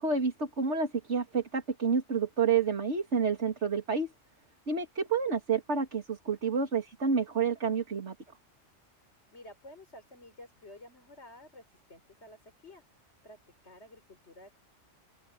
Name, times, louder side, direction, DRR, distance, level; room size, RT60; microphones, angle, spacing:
voice 1, 0.0-4.1 4.7-8.1, right 5 dB, 65° right, 2.8 m, -29 dB
voice 2, 9.3-12.8 13.2-13.4 13.6-14.6, left 1 dB, 60° left, 5.0 m, -52 dB
open air
omnidirectional pair, 1.3 m